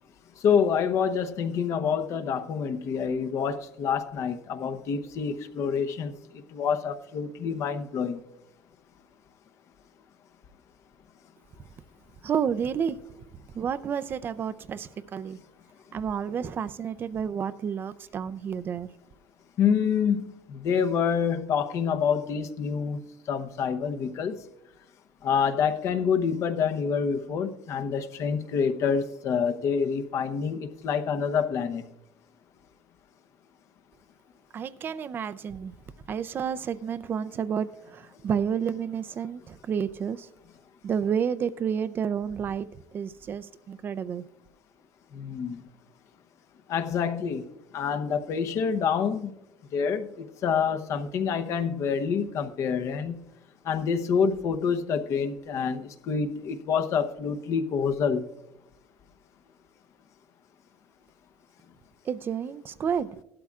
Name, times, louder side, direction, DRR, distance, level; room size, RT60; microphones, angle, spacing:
voice 1, 0.4-6.1 6.5-8.2 19.6-20.2 20.5-23.0 23.3-24.3 25.2-31.8 45.1-45.6 46.7-47.4 47.7-49.3 49.7-53.2 53.7-58.3, left 6 dB, 55° left, 0.9 m, -27 dB
voice 2, 12.2-13.0 13.5-15.4 15.9-18.9 34.5-35.7 36.1-40.3 40.8-44.2 62.1-63.2, right 7 dB, 35° right, 0.5 m, -30 dB
16.5 x 12.5 x 2.4 m
cardioid pair, 135°, 6 cm